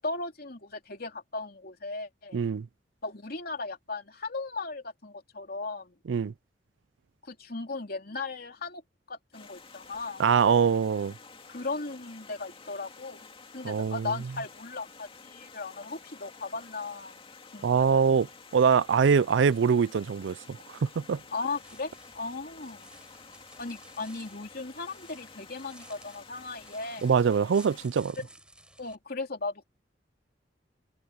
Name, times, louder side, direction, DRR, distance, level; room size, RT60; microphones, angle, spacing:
voice 1, 0.0-2.4 3.0-5.9 7.2-8.8 9.1-10.2 11.5-13.3 13.5-17.1 17.5-18.0 21.3-22.9 23.6-27.1 28.8-29.6, left 3 dB, 55° left, 3.1 m, -37 dB
voice 2, 2.3-2.7 6.1-6.3 10.2-11.1 13.6-14.1 17.6-18.3 18.5-21.2 27.0-28.2, right 6 dB, 90° right, 0.4 m, -24 dB
Stream, 9.3-27.9, left 4 dB, 30° left, 2.6 m, -51 dB
sound 1, 21.5-29.0, right 1 dB, 5° right, 5.8 m, -55 dB
head